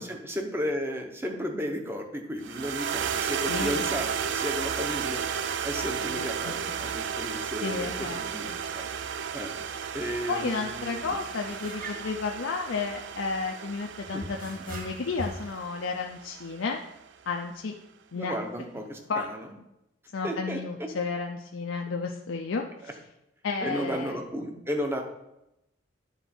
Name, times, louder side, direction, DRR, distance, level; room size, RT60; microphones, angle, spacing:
voice 1, 0.0-5.2 5.6-8.9 9.3-9.5 9.9-11.1 14.1-14.2 18.1-19.4 20.2-20.9 23.6-25.0, equal, 10° right, 3 dB, 0.8 m, -34 dB
sound 1, 2.4-16.9, right 7 dB, 65° right, 0.4 m, -33 dB
voice 2, 3.5-3.9 6.1-6.7 7.6-8.6 10.3-16.8 17.3-17.7 18.1-18.4 19.1-19.3 20.1-22.9 23.4-24.2, left 4 dB, 90° left, 2 dB, 0.6 m, -32 dB
sound 2, 9.6-9.7 10.1-10.3 11.0-13.1 14.1-15.6, right 1 dB, 45° right, 1.1 m, -41 dB
9.8 x 4.0 x 4.4 m, 0.88 s
head